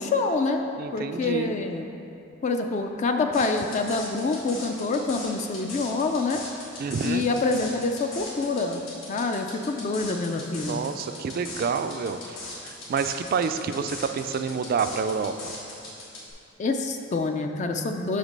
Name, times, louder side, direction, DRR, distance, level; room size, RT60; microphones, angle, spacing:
voice 1, 0.0-0.6 0.9-1.9 2.4-6.4 7.0-8.8 9.1-10.8 16.6-18.2, left 3 dB, 35° left, 4 dB, 0.3 m, -26 dB
voice 2, 0.8-1.5 6.8-7.3 10.7-12.4 12.6-15.5, right 5 dB, 45° right, 9 dB, 0.3 m, -28 dB
sound 1, 3.3-16.3, left 2 dB, 80° left, 1.5 m, -40 dB
5.9 x 5.0 x 5.3 m, 2.6 s
head